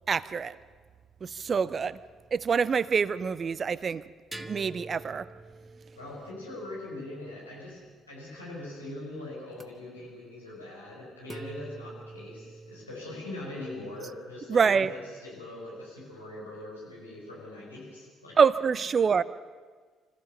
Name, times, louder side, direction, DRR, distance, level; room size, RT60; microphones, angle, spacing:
voice 1, 0.1-0.6 1.2-2.0 2.3-4.0 4.4-5.3 14.5-14.9 18.4-19.2, right 6 dB, 40° right, 18 dB, 0.7 m, -25 dB
sound 1, 1.5-2.7 4.3-8.0 9.5-9.7 11.3-12.8, right 2 dB, 15° right, 1.2 m, -46 dB
voice 2, 6.0-7.8 8.1-18.4 18.7-18.8, left 1 dB, 85° left, -6 dB, 5.4 m, -42 dB
25.5 x 15.0 x 6.9 m, 1.5 s
figure-of-eight pair, 45°, 0 cm